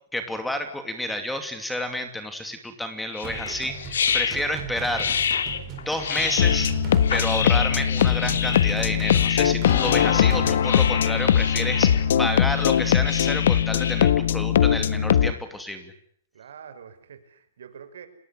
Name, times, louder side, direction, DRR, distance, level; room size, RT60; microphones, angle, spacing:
voice 1, 0.1-5.1 5.8-6.7 7.1-15.9, left 1 dB, 5° left, 8 dB, 2.8 m, -30 dB
sound 1, 3.1-14.1, left 7 dB, 90° left, 3.1 m, -29 dB
sound 2, 3.2-10.6, right 8 dB, 25° right, 5.0 m, -37 dB
sound 3, 6.4-15.3, left 9 dB, 65° left, 1.5 m, -21 dB
voice 2, 16.3-18.1, right 7 dB, 80° right, 10 dB, 5.6 m, -45 dB
29.5 x 20.5 x 8.3 m, 0.64 s
hypercardioid pair, 165°, 0 cm